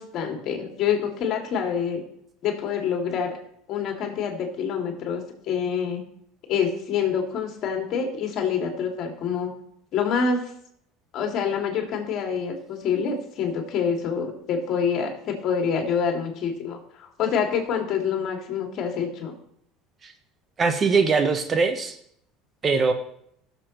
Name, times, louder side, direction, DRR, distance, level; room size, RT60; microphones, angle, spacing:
voice 1, 0.0-2.0 2.4-3.3 3.7-6.0 6.5-9.5 9.9-10.4 11.1-19.3, left 6 dB, 55° left, 2 dB, 2.3 m, -26 dB
voice 2, 20.6-22.0 22.6-22.9, right 4 dB, 35° right, 8 dB, 1.0 m, -21 dB
16.5 x 6.9 x 3.1 m, 0.68 s
supercardioid pair, 95°, 0 cm